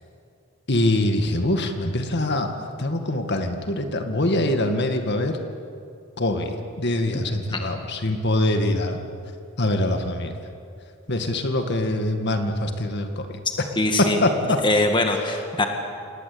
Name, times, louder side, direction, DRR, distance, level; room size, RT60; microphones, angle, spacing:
voice 1, 0.7-5.4 6.2-9.0 9.6-10.4 11.1-13.4 14.0-14.6, left 1 dB, 50° left, 6 dB, 2.0 m, -24 dB
voice 2, 13.8-14.2 14.6-15.7, left 2 dB, 20° left, 4 dB, 1.8 m, -22 dB
28.5 x 19.0 x 8.7 m, 2.5 s
head